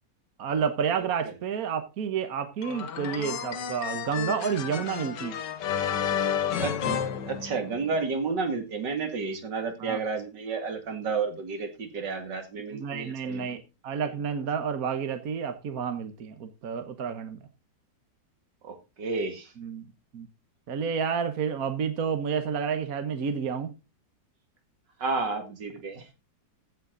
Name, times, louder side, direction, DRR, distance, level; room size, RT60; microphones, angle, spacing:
voice 1, 0.4-5.4 9.8-10.0 12.7-17.4 19.6-19.9 20.1-20.3 20.7-23.7, right 6 dB, 60° right, 1.5 m, -30 dB
voice 2, 1.0-1.3 6.6-13.5 18.6-19.5 25.0-26.1, right 4 dB, 80° right, 2.8 m, -31 dB
sound 1, 2.6-8.0, left 8 dB, 85° left, 1.7 m, -31 dB
15.0 x 7.5 x 3.9 m
omnidirectional pair, 1.8 m